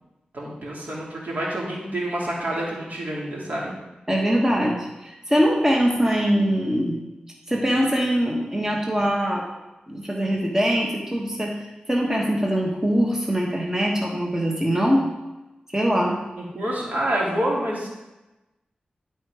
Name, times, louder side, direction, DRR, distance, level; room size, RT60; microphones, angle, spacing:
voice 1, 0.3-3.7 16.4-17.9, right 1 dB, 65° right, -4 dB, 2.5 m, -27 dB
voice 2, 4.1-7.0 7.5-9.4 9.9-11.6 11.9-15.1 15.7-16.2, equal, 15° right, -1 dB, 1.3 m, -22 dB
11.0 x 4.5 x 4.8 m, 1.0 s
wide cardioid pair, 65°, 3 cm